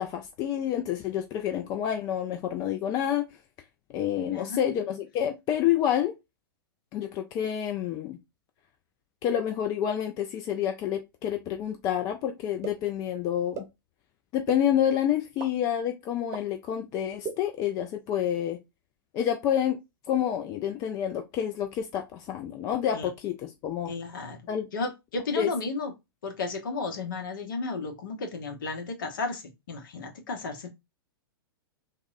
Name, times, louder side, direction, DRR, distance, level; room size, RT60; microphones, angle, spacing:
voice 1, 0.0-3.3 3.9-6.1 6.9-8.2 9.2-13.7 14.3-18.6 19.1-19.8 20.1-23.9 24.5-24.7 25.4-25.5, left 10 dB, 30° left, 0.4 m, -28 dB
voice 2, 4.2-4.6 22.9-23.1 23.9-24.4 24.7-25.9 26.2-30.7, left 3 dB, 60° left, 0.9 m, -33 dB
sound 1, 12.6-12.7 13.5-13.6 14.5-14.6 15.4-15.5 16.3-16.4 17.2-17.3, right 6 dB, 25° right, 0.8 m, -33 dB
3.4 x 2.2 x 2.4 m
figure-of-eight pair, 100°, 12 cm